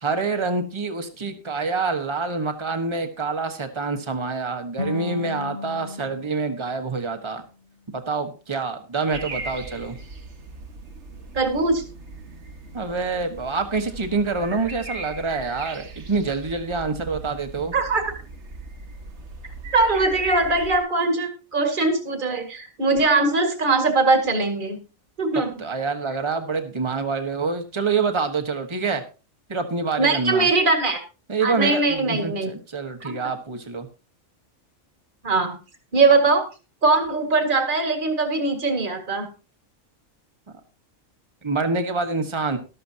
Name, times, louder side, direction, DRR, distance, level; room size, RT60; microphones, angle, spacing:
voice 1, 0.0-7.4 7.9-10.0 12.7-17.7 25.6-29.0 29.5-30.5 31.3-33.9 41.4-42.6, right 4 dB, 20° right, 6 dB, 1.4 m, -26 dB
sound 1, 4.8-7.9, left 4 dB, 45° left, 1.7 m, -35 dB
sound 2, 9.1-20.8, right 3 dB, 60° right, 1.6 m, -38 dB
voice 2, 11.3-11.8 17.7-18.1 19.7-24.8 25.2-25.5 30.0-31.0 31.4-32.5 33.0-33.3 35.2-35.6 35.9-36.5 36.8-39.3, right 3 dB, 40° right, 5 dB, 2.1 m, -21 dB
14.0 x 12.5 x 2.8 m, 0.32 s
omnidirectional pair, 1.4 m